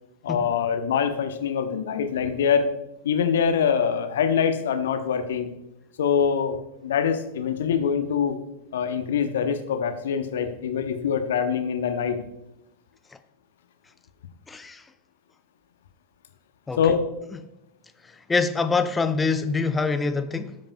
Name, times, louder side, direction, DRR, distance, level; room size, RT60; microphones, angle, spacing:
voice 1, 0.2-2.7 3.0-5.5 6.0-8.4 8.7-12.2 16.8-17.1, left 7 dB, 60° left, 0.8 m, -24 dB
voice 2, 14.5-14.8 16.7-16.8 18.3-20.6, left 4 dB, 10° left, 0.4 m, -25 dB
14.5 x 5.3 x 2.3 m
figure-of-eight pair, 90°, 0 cm